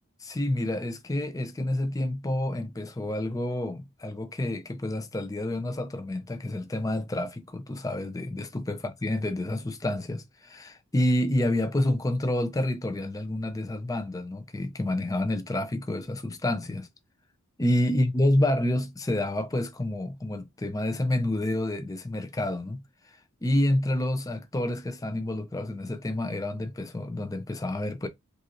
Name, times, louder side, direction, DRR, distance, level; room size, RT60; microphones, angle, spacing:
voice 1, 0.2-16.9 17.6-22.8 23.4-28.1, left 1 dB, 15° left, 0.5 m, -28 dB
5.4 x 2.5 x 2.9 m
head